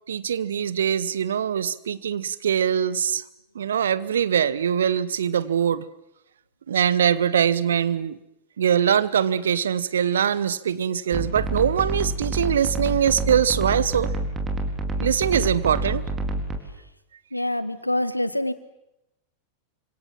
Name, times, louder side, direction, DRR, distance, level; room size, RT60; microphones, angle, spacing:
voice 1, 0.1-3.2 3.5-5.9 6.7-8.2 8.6-14.1 15.0-16.0, right 8 dB, 65° right, 1.1 m, -22 dB
sound 1, 11.1-16.6, right 1 dB, 20° right, 4.3 m, -28 dB
voice 2, 17.3-18.5, left 1 dB, 85° left, 1.4 m, -25 dB
28.5 x 26.0 x 7.6 m
figure-of-eight pair, 90°, 0 cm